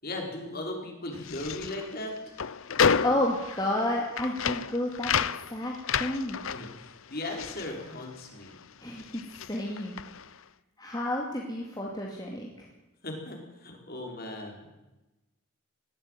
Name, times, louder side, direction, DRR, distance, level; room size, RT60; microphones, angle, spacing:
voice 1, 0.0-2.2 6.5-6.7 7.1-8.5 13.0-14.7, left 1 dB, 45° left, 1 dB, 4.7 m, -37 dB
sound 1, 1.1-8.6 8.9-10.4, left 6 dB, 65° left, 0.7 m, -31 dB
voice 2, 2.7-6.4 8.8-10.0 10.8-12.7, left 1 dB, 20° left, -1 dB, 2.4 m, -31 dB
19.0 x 15.5 x 9.2 m, 1.0 s
head